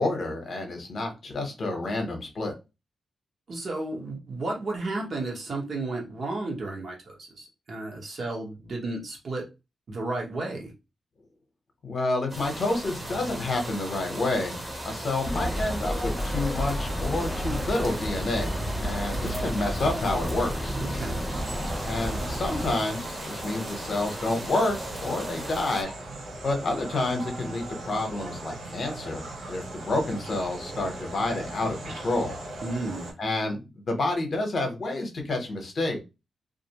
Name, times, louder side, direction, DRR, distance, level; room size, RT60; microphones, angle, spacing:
voice 1, 0.0-2.5 11.8-14.6 14.8-21.1 21.8-25.9 26.4-32.4 33.2-36.0, left 2 dB, 50° left, 0.8 m, -29 dB
voice 2, 3.5-9.4 9.9-10.7 20.7-21.4 32.6-33.1, right 2 dB, 55° right, 1.0 m, -33 dB
sound 1, 12.3-25.8, right 1 dB, 25° right, 0.8 m, -38 dB
sound 2, 15.2-22.7, equal, 5° left, 0.5 m, -31 dB
sound 3, 21.3-33.1, right 2 dB, 85° right, 0.7 m, -39 dB
2.4 x 2.0 x 2.8 m
wide cardioid pair, 115°, 0 cm